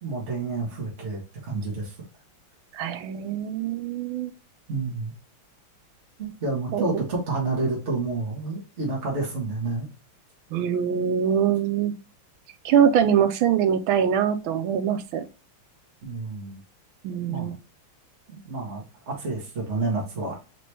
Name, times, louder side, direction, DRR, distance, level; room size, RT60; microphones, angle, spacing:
voice 1, 0.0-1.9 4.7-5.1 6.2-9.9 16.0-16.6 17.3-17.6 18.3-20.3, right 3 dB, 40° right, -3 dB, 1.6 m, -29 dB
voice 2, 2.7-4.3 6.7-7.0 10.5-11.9 12.6-15.2 17.0-17.5, right 8 dB, 90° right, 9 dB, 1.5 m, -23 dB
4.3 x 3.0 x 3.2 m, 0.32 s
omnidirectional pair, 2.2 m